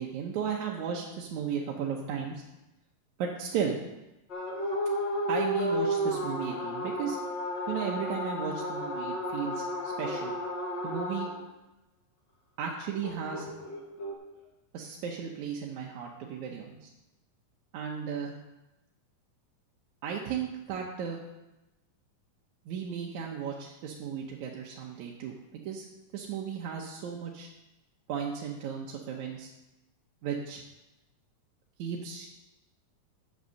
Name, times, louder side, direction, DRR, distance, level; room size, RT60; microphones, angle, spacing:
voice 1, 0.0-2.4 3.2-3.8 5.3-7.2 7.7-10.4 10.8-11.3 12.6-13.5 14.7-16.9 17.7-18.4 20.0-21.2 22.7-25.4 25.7-25.9 26.1-27.5 28.1-29.5 30.2-30.6 31.8-32.3, right 7 dB, 70° right, -1 dB, 2.1 m, -35 dB
sound 1, 4.3-11.3 13.0-14.1, equal, 40° left, 1.9 m, -32 dB
8.2 x 8.0 x 6.4 m, 0.98 s
omnidirectional pair, 4.0 m